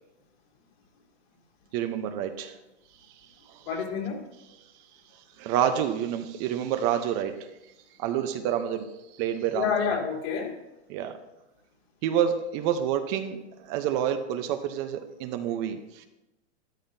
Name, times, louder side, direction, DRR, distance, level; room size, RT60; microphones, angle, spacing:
voice 1, 1.7-2.6 3.5-3.7 5.4-7.5 8.0-8.9 9.2-9.7 10.9-11.2 12.0-16.1, right 9 dB, 40° right, 8 dB, 0.9 m, -28 dB
voice 2, 3.7-4.3 9.5-10.6, left 6 dB, 65° left, -2 dB, 3.6 m, -28 dB
13.0 x 11.5 x 2.7 m, 0.96 s
hypercardioid pair, 130°, 34 cm